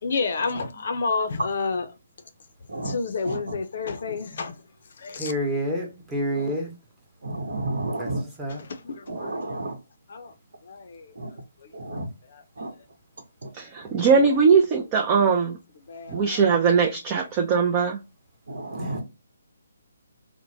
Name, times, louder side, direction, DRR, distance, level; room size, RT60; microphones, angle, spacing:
voice 1, 0.0-1.9 2.8-4.6 5.0-5.3 8.5-9.6 10.1-10.3 10.6-11.2 11.6-12.0 12.3-12.4 15.9-16.4, left 4 dB, 55° left, 0.5 m, -30 dB
voice 2, 3.2-3.5 6.4-6.5 7.2-8.2 9.1-9.7 11.2-11.3 11.7-12.1 12.6-12.7 13.4-13.5 16.1-16.3 18.5-19.0, right 2 dB, 75° right, 0.9 m, -31 dB
voice 3, 5.2-6.7 7.9-8.1 8.4-8.6, equal, 10° right, 1.0 m, -28 dB
voice 4, 13.5-15.6 16.1-18.0, right 5 dB, 25° right, 0.4 m, -20 dB
3.0 x 2.1 x 2.6 m
figure-of-eight pair, 145°, 0 cm